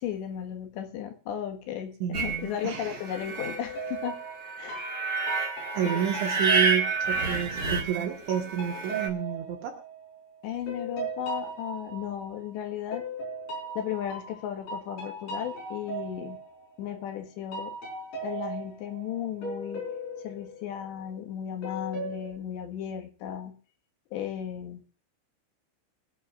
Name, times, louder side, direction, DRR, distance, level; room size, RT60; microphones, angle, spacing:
voice 1, 0.0-4.1 4.6-4.9 5.9-6.1 10.4-13.0 13.8-16.4 16.8-17.7 18.2-19.9 20.2-23.5 24.1-24.8, left 9 dB, 70° left, 4 dB, 3.6 m, -35 dB
voice 2, 2.0-3.0 5.7-9.8, right 10 dB, 70° right, 1 dB, 3.8 m, -30 dB
sound 1, 2.1-9.1, right 4 dB, 55° right, 1.4 m, -30 dB
sound 2, 2.7-3.0 3.5-7.7 8.3-12.5 12.9-17.2 17.5-21.2 21.6-22.3, right 2 dB, 50° left, 6.2 m, -38 dB
24.5 x 9.9 x 2.5 m, 0.40 s
omnidirectional pair, 5.8 m